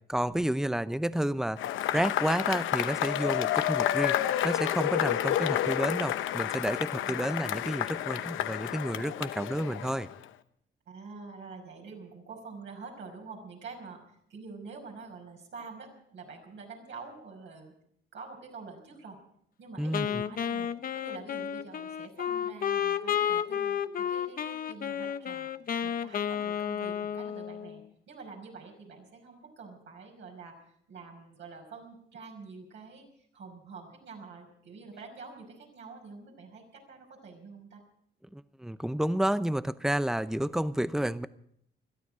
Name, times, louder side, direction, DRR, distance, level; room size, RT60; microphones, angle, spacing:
voice 1, 0.1-1.7 1.9-4.2 4.4-10.1 19.8-20.2 38.3-41.3, right 1 dB, ahead, 14 dB, 0.7 m, -30 dB
Cheering / Applause / Crowd, 1.6-10.2, left 12 dB, 80° left, 0.8 m, -30 dB
voice 2, 10.9-17.7 18.1-19.2 19.6-25.5 25.8-30.6 30.9-37.8, right 4 dB, 70° right, 0 dB, 5.6 m, -47 dB
Wind instrument woodwind instrument, 19.9-27.8, left 8 dB, 45° left, 0.8 m, -32 dB
21.5 x 13.0 x 4.9 m, 0.68 s
cardioid pair, 90°, 20 cm